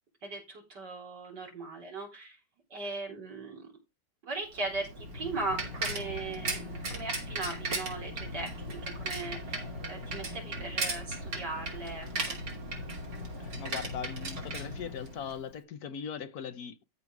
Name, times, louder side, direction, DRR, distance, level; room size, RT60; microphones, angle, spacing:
voice 1, 0.2-2.4 2.7-3.7 4.2-12.4, right 3 dB, 70° right, 4.5 m, -39 dB
Bicycle, 4.6-15.4, right 2 dB, 85° right, 3.4 m, -37 dB
voice 2, 13.4-16.8, left 7 dB, 65° left, 1.2 m, -40 dB
13.0 x 4.7 x 4.8 m
omnidirectional pair, 1.9 m